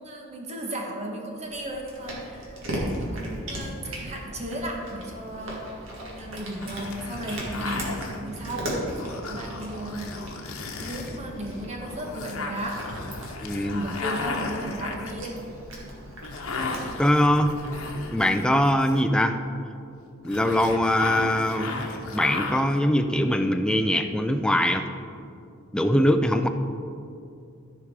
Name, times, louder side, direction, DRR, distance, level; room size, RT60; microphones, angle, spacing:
voice 1, 0.0-5.6 6.1-8.7 9.3-10.1 10.8-12.9 13.8-15.4, right 1 dB, 30° right, 1 dB, 1.3 m, -35 dB
Cat, 1.4-18.5, right 1 dB, 65° right, 2.0 m, -38 dB
sound 1, 6.6-19.2 20.2-22.8, left 3 dB, 85° left, 1.0 m, -35 dB
voice 2, 13.4-13.8 17.0-17.5 18.1-19.4 20.2-24.9 25.7-26.5, equal, 5° left, 7 dB, 0.4 m, -22 dB
13.5 x 5.0 x 4.8 m, 2.5 s
head